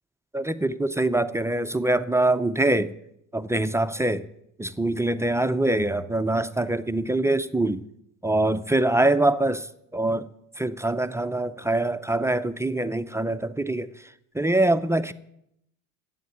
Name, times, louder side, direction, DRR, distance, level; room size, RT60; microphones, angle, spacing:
voice 1, 0.3-2.9 3.3-4.3 4.6-7.8 8.2-10.3 10.6-13.9 14.3-15.1, right 2 dB, 5° right, 0.5 m, -24 dB
12.5 x 8.6 x 8.7 m
supercardioid pair, 95°, 40 cm